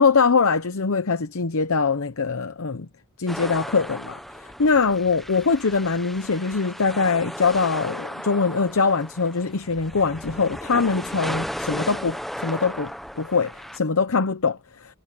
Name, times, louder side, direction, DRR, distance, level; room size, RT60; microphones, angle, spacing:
voice 1, 0.0-2.9 3.2-14.9, left 4 dB, 75° left, 0.8 m, -23 dB
sound 1, 3.3-13.8, equal, ahead, 0.8 m, -35 dB
head